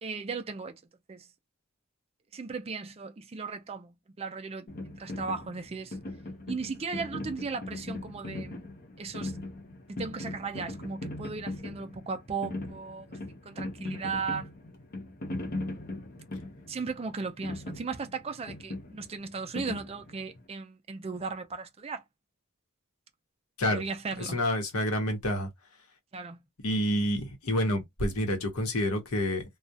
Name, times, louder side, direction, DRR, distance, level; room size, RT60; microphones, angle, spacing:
voice 1, 0.0-0.8 1.1-1.3 2.3-6.0 6.5-8.7 9.0-9.4 9.9-13.2 13.5-14.5 16.7-22.0 23.7-24.4 26.1-26.4, right 4 dB, 30° right, 0.4 m, -36 dB
sound 1, 4.7-20.4, left 2 dB, 40° left, 0.6 m, -39 dB
voice 2, 24.2-25.5 26.6-29.4, equal, 85° left, 0.8 m, -28 dB
2.3 x 2.0 x 2.6 m
head